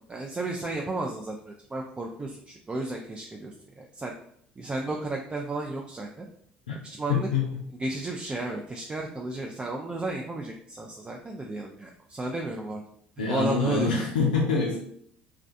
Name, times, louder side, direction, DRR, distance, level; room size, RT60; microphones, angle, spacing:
voice 1, 0.1-4.1 4.6-6.3 6.8-7.3 7.8-12.8 13.3-14.0, right 2 dB, 25° right, 0 dB, 0.4 m, -33 dB
voice 2, 7.1-7.6 13.2-14.8, left 5 dB, 90° left, -2 dB, 0.3 m, -25 dB
2.3 x 2.2 x 2.5 m, 0.67 s
hypercardioid pair, 60°, 5 cm